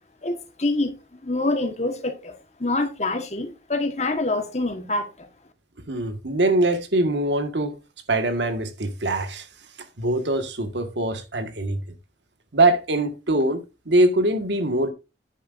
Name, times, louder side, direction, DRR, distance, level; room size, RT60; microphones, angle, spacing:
voice 1, 0.2-0.9 1.2-5.3, left 2 dB, 40° left, 1.4 m, -26 dB
voice 2, 5.9-7.8 8.1-9.5 10.0-11.8 12.5-14.9, right 2 dB, 90° right, 1.7 m, -23 dB
10.0 x 8.9 x 2.6 m
head